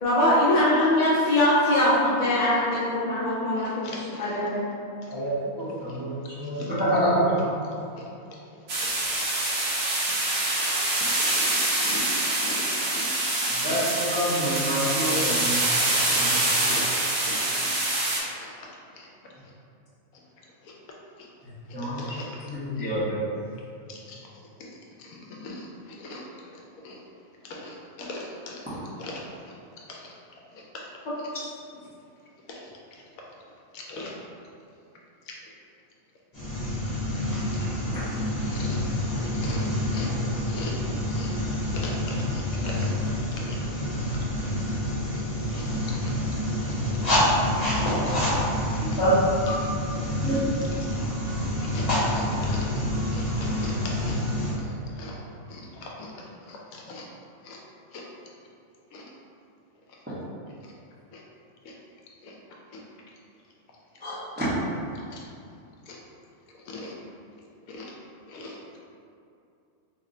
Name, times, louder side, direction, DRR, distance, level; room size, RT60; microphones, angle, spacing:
voice 1, 0.0-4.7 31.0-31.1, left 1 dB, 65° left, -8 dB, 0.4 m, -22 dB
voice 2, 3.6-4.3 5.9-6.0 6.5-6.7 8.8-8.9 11.0-12.1 12.4-12.6 12.9-13.0 15.0-15.1 15.5-16.2 16.6-16.8 17.2-17.4 17.8-18.0 18.3-18.5 18.9-19.1 20.6-20.7 22.0-22.3 23.9-24.2 24.6-24.7 25.0-26.2 26.8-27.0 27.4-29.2 29.9-30.1 30.5-30.8 32.5-32.7 33.7-34.2 38.4-38.8 39.2-41.3 41.7-42.9 43.5-43.6 43.9-44.3 45.1-45.2 45.5-45.7 46.0-46.1 46.6-46.7 48.3-48.5 48.9-49.0 51.6-54.2 54.5-55.2 55.5-56.1 56.5-57.0 57.4-57.6 57.9-58.0 58.9-59.0 61.1-61.2 61.6-61.7 62.2-62.3 65.1-65.2 65.9-66.0 66.7-66.9 67.7-67.9 68.3-68.6, left 2 dB, 80° left, -2 dB, 1.0 m, -40 dB
voice 3, 5.1-7.4 13.5-15.6 16.2-16.7 21.7-22.0 22.4-23.2 37.9-38.0 49.0-49.1 49.5-49.6 50.2-50.4 64.0-64.5, right 1 dB, 10° right, -12 dB, 0.6 m, -27 dB
sound 1, 8.7-18.2, right 2 dB, 60° right, 0.7 m, -25 dB
sound 2, 36.3-54.5, left 1 dB, 35° left, 0.9 m, -27 dB
2.9 x 2.1 x 3.7 m, 2.5 s
omnidirectional pair, 1.5 m